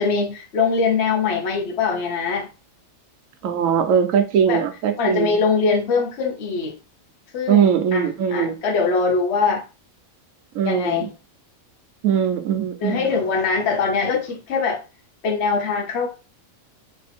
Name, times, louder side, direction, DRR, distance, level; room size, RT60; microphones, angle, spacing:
voice 1, 0.0-2.5 4.5-4.6 5.0-6.7 7.3-9.6 10.6-11.1 12.8-14.8 15.2-16.1, left 4 dB, 55° left, 1.1 m, -22 dB
voice 2, 3.4-5.4 7.5-8.6 10.5-11.1 12.0-13.3, right 8 dB, 70° right, 1.1 m, -20 dB
3.4 x 2.7 x 4.2 m
omnidirectional pair, 1.5 m